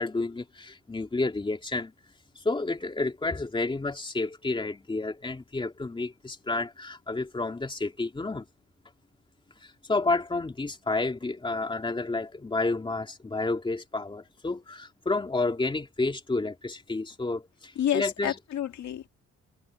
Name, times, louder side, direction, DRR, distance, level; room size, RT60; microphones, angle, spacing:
voice 1, 0.0-1.9 2.4-8.4 9.6-18.3, left 3 dB, 15° left, 3.1 m, -30 dB
voice 2, 17.8-19.1, left 10 dB, 75° left, 2.2 m, -29 dB
wide cardioid pair, 180°, 29 cm